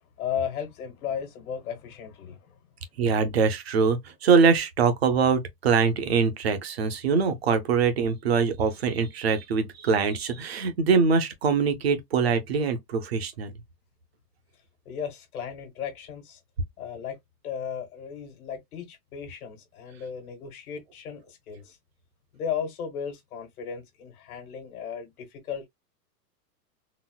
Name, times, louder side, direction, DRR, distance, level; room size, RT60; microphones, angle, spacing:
voice 1, 0.2-2.6 14.8-16.4 16.8-17.2 17.4-21.8 22.3-25.7, left 7 dB, 60° left, 1.4 m, -35 dB
voice 2, 3.0-13.5, right 5 dB, 40° right, 0.6 m, -23 dB
3.9 x 2.0 x 2.2 m
supercardioid pair, 180°, 50 cm